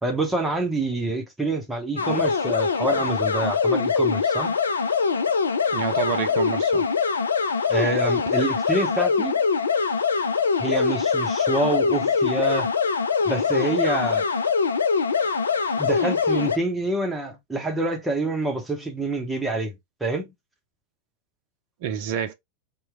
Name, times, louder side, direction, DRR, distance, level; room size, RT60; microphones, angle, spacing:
voice 1, 0.0-4.5 7.7-9.4 10.6-12.7 13.2-14.3 15.8-19.7 20.0-20.3, right 2 dB, 10° right, 1.0 m, -26 dB
sound 1, 2.0-16.6, left 5 dB, 70° left, 0.4 m, -23 dB
voice 2, 5.7-6.9 21.8-22.3, right 8 dB, 45° right, 0.6 m, -28 dB
3.0 x 2.3 x 3.4 m
figure-of-eight pair, 90°, 0 cm